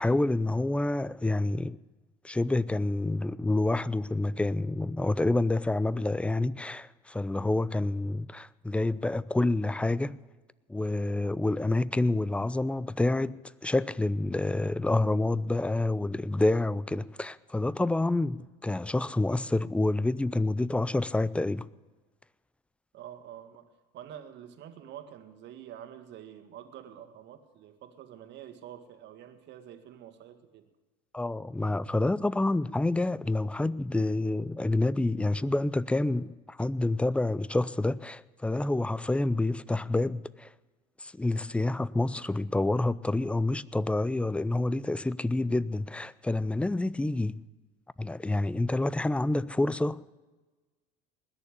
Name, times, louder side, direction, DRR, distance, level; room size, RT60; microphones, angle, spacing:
voice 1, 0.0-1.8 2.2-10.2 10.7-13.4 13.6-21.7 31.1-40.5 41.0-47.4 48.0-50.1, left 2 dB, 5° left, 0.5 m, -28 dB
voice 2, 22.9-30.7, right 10 dB, 60° right, 1.9 m, -47 dB
20.0 x 7.1 x 9.9 m
supercardioid pair, 90°, 21 cm